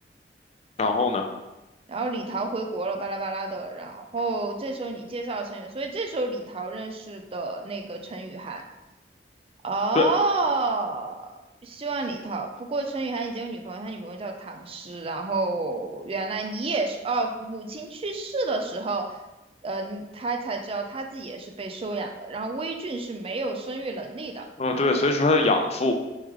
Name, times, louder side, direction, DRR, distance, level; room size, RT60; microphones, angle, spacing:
voice 1, 0.8-1.3 9.9-10.1 24.6-25.9, left 3 dB, 35° left, 4 dB, 0.5 m, -22 dB
voice 2, 1.9-8.6 9.6-11.3 11.6-19.2 19.6-24.4, right 3 dB, 35° right, 3 dB, 0.5 m, -30 dB
4.6 x 3.3 x 3.6 m, 1.0 s
head